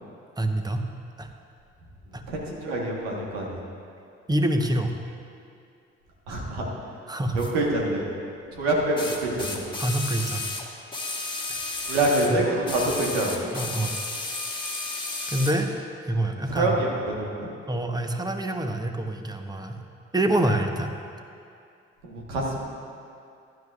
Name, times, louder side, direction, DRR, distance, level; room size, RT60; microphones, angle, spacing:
voice 1, 0.4-0.8 1.2-1.3 2.1-2.2 4.3-4.9 7.1-7.4 9.8-10.5 11.5-11.6 12.2-12.4 13.5-13.9 15.3-15.7 16.0-16.9 17.7-19.8 20.1-20.9, right 1 dB, 15° right, 5 dB, 1.0 m, -26 dB
voice 2, 2.3-3.6 6.3-6.6 7.3-8.0 8.5-9.7 11.9-13.5 16.5-17.5 22.0-22.6, right 1 dB, 85° right, -2 dB, 1.5 m, -26 dB
sound 1, 7.4-7.5 9.0-12.4 12.7-15.6 16.6-16.7, left 2 dB, 15° left, 1.5 m, -33 dB
15.5 x 10.5 x 2.5 m, 2.5 s
hypercardioid pair, 45°, 31 cm